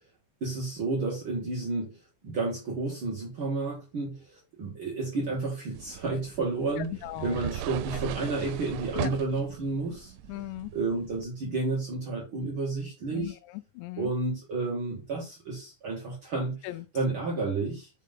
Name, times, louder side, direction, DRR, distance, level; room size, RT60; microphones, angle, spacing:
voice 1, 0.4-2.0 2.2-6.9 7.2-10.1 10.7-13.4 14.0-16.6 16.9-17.9, right 3 dB, 65° right, 1.2 m, -31 dB
sound 1, 5.8-11.3, right 11 dB, 85° right, 3.0 m, -38 dB
voice 2, 7.0-7.4 8.9-9.1 10.3-10.7 13.1-14.1 16.6-16.9, left 17 dB, 80° left, 2.7 m, -38 dB
6.6 x 5.3 x 3.9 m
omnidirectional pair, 5.4 m